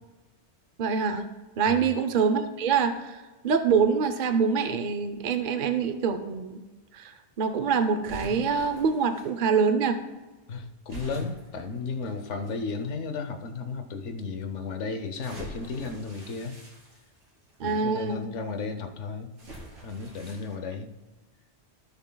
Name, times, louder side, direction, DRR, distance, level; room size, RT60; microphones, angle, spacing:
voice 1, 0.8-1.3 1.6-6.6 6.9-10.0 17.6-18.3, right 6 dB, 50° right, 8 dB, 0.7 m, -25 dB
sound 1, 8.1-9.3 10.9-12.5 13.3-13.4 15.2-17.5 19.4-20.5, equal, 80° right, 3.1 m, -43 dB
voice 2, 10.5-16.5 17.6-19.3 19.8-20.9, left 4 dB, 80° left, 8 dB, 1.2 m, -34 dB
17.0 x 7.1 x 2.3 m, 1.2 s
omnidirectional pair, 1.2 m